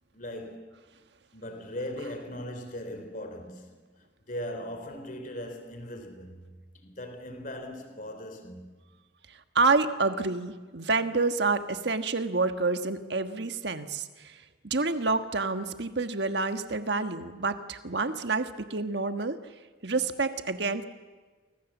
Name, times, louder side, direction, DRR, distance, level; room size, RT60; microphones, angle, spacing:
voice 1, 0.1-0.9 1.3-3.7 4.3-6.4 6.7-8.7, left 1 dB, 45° left, 3.4 m, -39 dB
voice 2, 9.5-14.3 14.6-19.4 19.8-20.8, right 3 dB, 60° right, 1.5 m, -28 dB
29.5 x 25.0 x 7.3 m
head